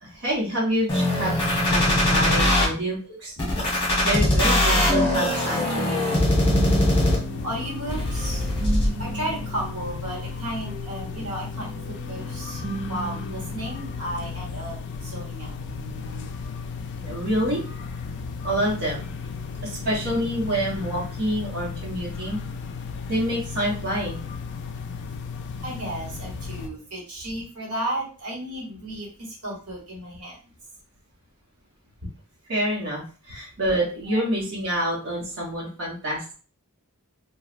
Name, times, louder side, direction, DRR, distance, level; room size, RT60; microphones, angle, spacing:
voice 1, 0.0-3.3 4.0-6.2 16.9-22.4 23.1-24.2 32.5-36.3, equal, 55° right, -6 dB, 1.0 m, -27 dB
sound 1, 0.9-2.6 3.4-7.4 7.9-8.9, left 1 dB, 25° left, 1.0 m, -21 dB
sound 2, 5.1-15.2 15.5-16.3, right 3 dB, 40° right, 0.6 m, -37 dB
sound 3, 7.0-26.7, left 5 dB, 55° left, 0.3 m, -35 dB
voice 2, 7.4-8.5 9.0-15.5 22.4-22.5 25.6-30.4 34.1-34.2, right 1 dB, 80° right, -3 dB, 1.2 m, -34 dB
3.1 x 2.3 x 2.4 m, 0.37 s
head